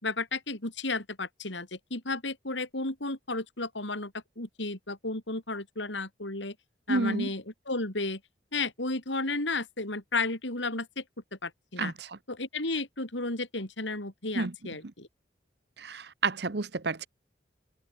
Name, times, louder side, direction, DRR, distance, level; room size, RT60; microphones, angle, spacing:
voice 1, 0.0-6.5 6.9-8.2 8.5-11.0 11.3-11.9 12.3-15.1, left 3 dB, 75° left, 4.4 m, -33 dB
voice 2, 6.9-7.3 11.8-12.2 14.3-14.5 15.8-17.1, right 3 dB, 60° right, 0.9 m, -30 dB
open air
head